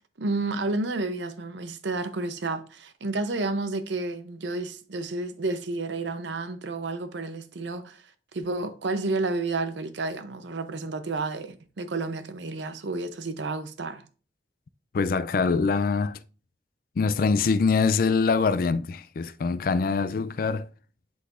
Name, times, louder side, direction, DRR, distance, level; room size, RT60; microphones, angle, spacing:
voice 1, 0.2-8.0 8.3-14.0, right 3 dB, 80° right, 0.6 m, -31 dB
voice 2, 14.9-16.2 17.0-20.7, left 4 dB, 50° left, 0.3 m, -24 dB
11.0 x 3.9 x 2.5 m
head